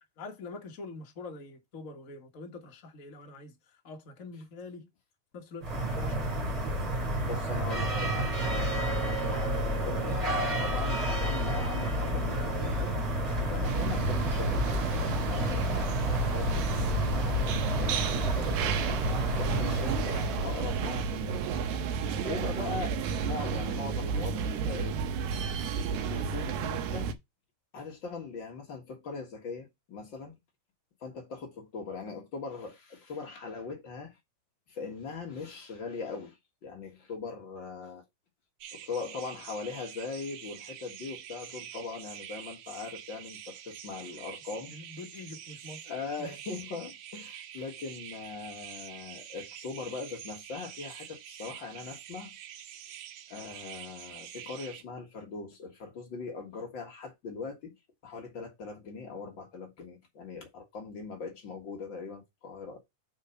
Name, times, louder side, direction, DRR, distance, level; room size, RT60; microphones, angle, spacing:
voice 1, 0.0-4.9 5.3-6.8 7.8-8.3 44.7-45.8 46.2-46.4, left 3 dB, 75° left, 0.7 m, -45 dB
sound 1, 5.6-21.1, equal, 15° right, 2.1 m, -30 dB
voice 2, 7.2-21.4 22.1-23.0 23.2-25.0 26.0-27.2 27.7-30.4 31.0-34.1 34.7-36.4 36.6-38.0 38.7-44.7 45.8-52.3 53.3-57.7 58.0-62.8, left 4 dB, 45° left, 1.8 m, -40 dB
sound 2, 13.6-27.1, right 6 dB, 70° right, 2.0 m, -32 dB
sound 3, 38.6-54.8, right 10 dB, 90° right, 2.5 m, -46 dB
5.4 x 4.4 x 5.7 m
omnidirectional pair, 3.7 m